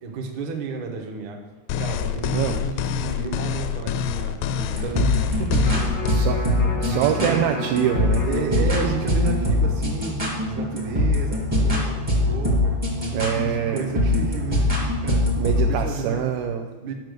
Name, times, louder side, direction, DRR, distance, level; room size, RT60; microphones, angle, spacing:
voice 1, 0.0-1.4 1.8-6.2 6.8-7.5 8.2-12.6 13.0-16.2 16.8-16.9, right 5 dB, 60° right, 2 dB, 2.3 m, -32 dB
sound 1, 1.7-6.1, left 9 dB, 85° left, 2.6 m, -27 dB
sound 2, 4.5-15.7, left 1 dB, 20° right, 0.9 m, -23 dB
Electric guitar, 5.6-11.8 12.2-12.3, left 1 dB, 40° left, 0.7 m, -34 dB
voice 2, 6.1-6.5 6.8-8.3 13.1-13.9 15.4-16.7, right 9 dB, 80° right, 4 dB, 2.2 m, -24 dB
10.5 x 6.0 x 6.5 m, 1.4 s
omnidirectional pair, 4.6 m